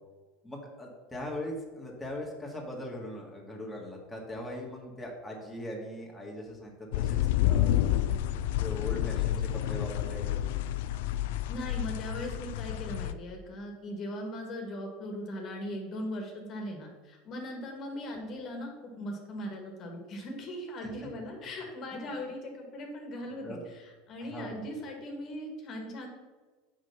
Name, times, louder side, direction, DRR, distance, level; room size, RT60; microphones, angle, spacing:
voice 1, 0.4-7.2 7.5-7.8 8.6-10.4 20.8-20.9 21.9-22.3 23.4-23.6 24.2-24.6, left 1 dB, 5° left, -3 dB, 1.8 m, -40 dB
sound 1, 6.9-13.1, left 12 dB, 65° left, 0.3 m, -29 dB
voice 2, 11.5-26.1, left 1 dB, 40° left, 2 dB, 1.7 m, -39 dB
6.2 x 5.1 x 5.5 m, 1.3 s
hypercardioid pair, 80°, 0 cm